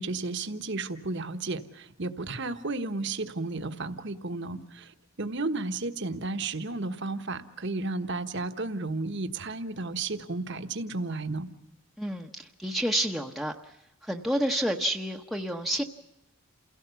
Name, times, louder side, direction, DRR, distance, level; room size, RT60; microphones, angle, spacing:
voice 1, 0.0-11.5, right 3 dB, 55° right, 9 dB, 1.3 m, -33 dB
voice 2, 12.0-13.5 14.0-15.8, equal, ahead, 1 dB, 0.9 m, -29 dB
29.0 x 17.0 x 7.0 m, 0.90 s
head